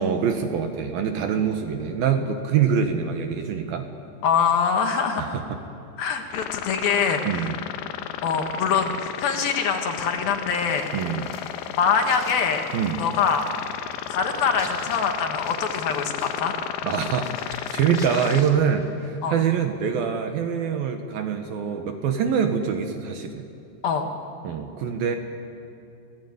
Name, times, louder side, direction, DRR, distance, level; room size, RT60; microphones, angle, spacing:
voice 1, 0.0-3.9 5.2-5.6 7.2-7.6 10.9-11.3 12.7-13.0 16.8-23.5 24.4-25.2, right 7 dB, 65° right, 5 dB, 2.7 m, -25 dB
voice 2, 4.2-5.4 6.0-7.4 8.2-10.9 11.8-12.7 13.0-13.5 14.1-16.5 19.2-19.4 23.8-24.1, left 6 dB, 65° left, 4 dB, 3.1 m, -24 dB
sound 1, 6.3-18.4, left 11 dB, 90° left, 3.1 m, -34 dB
sound 2, 10.5-19.3, left 2 dB, 20° left, 2.4 m, -47 dB
28.0 x 18.0 x 9.6 m, 2.6 s
omnidirectional pair, 5.1 m